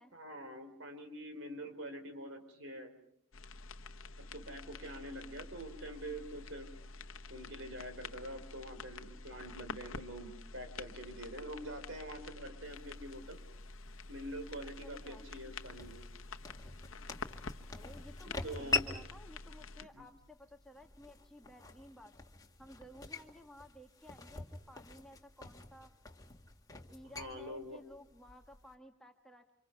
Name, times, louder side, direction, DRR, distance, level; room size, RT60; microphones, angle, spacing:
voice 1, 0.1-2.9 4.2-6.7 7.3-13.4 14.1-16.0 18.4-18.9 20.0-20.1 27.0-27.8, right 1 dB, 70° right, 7 dB, 4.1 m, -45 dB
sound 1, 3.3-19.8, left 3 dB, 75° left, 1.1 m, -48 dB
sound 2, 12.6-28.7, left 4 dB, 20° left, 1.9 m, -44 dB
voice 2, 14.8-15.2 17.7-22.1 22.6-25.9 26.9-29.5, left 1 dB, 5° left, 4 dB, 1.5 m, -56 dB
29.5 x 26.5 x 5.8 m, 0.68 s
head